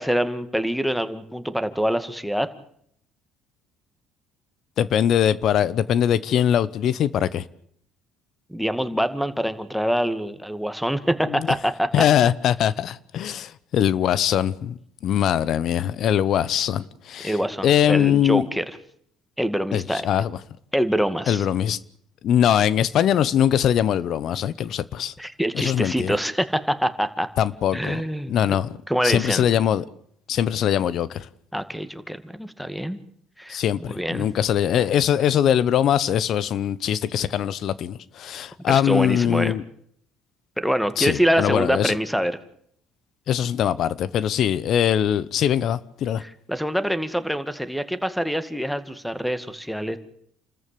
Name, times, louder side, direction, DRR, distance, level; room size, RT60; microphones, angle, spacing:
voice 1, 0.0-2.5 8.5-12.0 17.2-18.6 19.4-20.0 20.7-21.4 25.2-27.3 27.7-28.3 28.9-29.5 31.5-33.0 33.4-33.6 33.9-34.3 38.7-39.6 40.6-42.3 46.2-50.0, equal, ahead, 2.1 m, -25 dB
voice 2, 4.8-7.5 11.3-11.5 11.9-14.8 15.0-17.4 17.6-18.5 19.7-20.4 21.3-21.8 22.2-25.1 25.5-26.1 27.4-28.0 28.3-28.7 29.0-29.9 30.3-31.3 33.5-39.6 41.0-42.0 43.3-46.2, left 10 dB, 60° left, 0.9 m, -22 dB
29.0 x 14.0 x 8.6 m
supercardioid pair, 75°, 0 cm